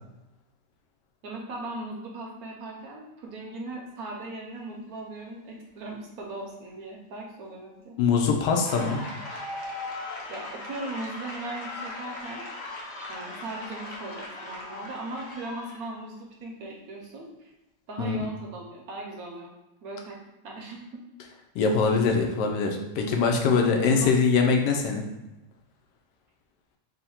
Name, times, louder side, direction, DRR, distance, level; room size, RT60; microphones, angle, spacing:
voice 1, 1.2-8.0 10.3-12.4 13.1-17.5 17.9-19.5 19.8-20.2 20.4-21.0 23.9-24.1, right 2 dB, 65° right, 0 dB, 1.1 m, -38 dB
voice 2, 8.0-9.0 18.0-18.2 21.5-25.1, left 5 dB, 85° left, 2 dB, 1.2 m, -23 dB
sound 1, 8.6-15.9, left 2 dB, 55° left, 0.8 m, -38 dB
3.8 x 2.1 x 4.2 m, 0.95 s
omnidirectional pair, 1.8 m